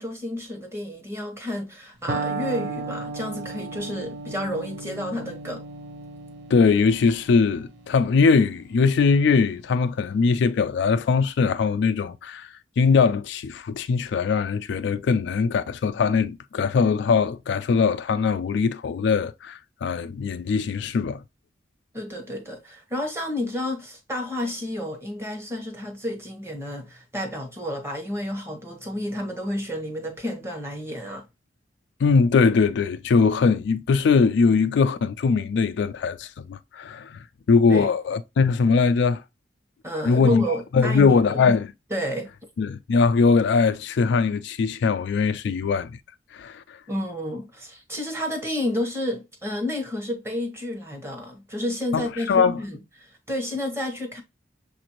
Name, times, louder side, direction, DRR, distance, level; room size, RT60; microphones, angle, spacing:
voice 1, 0.0-5.6 21.9-31.3 37.7-37.9 39.8-41.4 41.9-42.3 46.9-54.2, left 1 dB, 15° right, 1.0 m, -31 dB
Electric guitar, 2.1-9.9, right 3 dB, 65° right, 0.9 m, -36 dB
voice 2, 6.5-12.5 12.8-21.2 32.0-39.2 40.1-40.4 40.7-41.7 42.6-45.9 46.3-46.6 51.9-52.6, left 5 dB, 70° left, 0.3 m, -21 dB
6.6 x 2.6 x 2.9 m
head